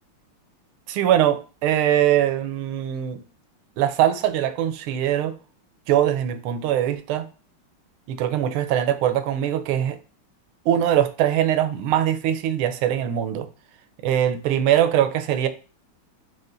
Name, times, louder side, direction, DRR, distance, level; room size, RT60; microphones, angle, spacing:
voice 1, 0.9-3.2 3.8-5.3 5.9-7.3 8.1-10.0 10.7-13.5 14.0-15.5, right 11 dB, 80° right, 1.4 m, -22 dB
4.8 x 2.4 x 3.7 m
omnidirectional pair, 2.4 m